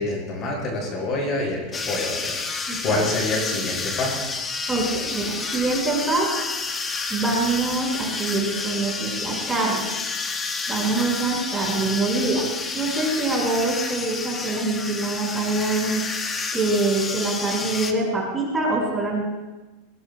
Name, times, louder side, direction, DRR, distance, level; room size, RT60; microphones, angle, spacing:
voice 1, 0.0-2.4 2.8-4.2, left 2 dB, 35° left, -1 dB, 5.9 m, -26 dB
sound 1, 1.7-17.9, left 4 dB, 20° left, 1.3 m, -30 dB
voice 2, 2.7-3.0 4.7-6.3 7.1-9.9 10.7-12.4 12.7-16.0 16.5-19.2, right 3 dB, 10° right, -3 dB, 5.6 m, -24 dB
21.0 x 20.0 x 2.3 m, 1.1 s
supercardioid pair, 140°, 0 cm